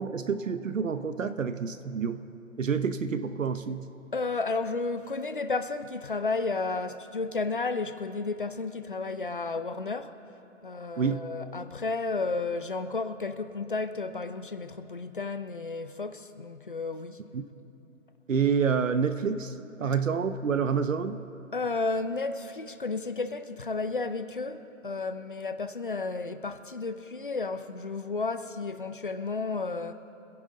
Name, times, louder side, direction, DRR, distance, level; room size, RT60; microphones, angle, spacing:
voice 1, 0.0-2.3 2.6-4.0 11.0-11.4 17.3-17.5 18.3-21.2, right 6 dB, 65° right, 0.8 m, -28 dB
voice 2, 4.1-10.1 10.6-17.2 21.5-29.9, left 3 dB, 40° left, 0.6 m, -32 dB
25.5 x 10.5 x 3.8 m
hypercardioid pair, 175°, 41 cm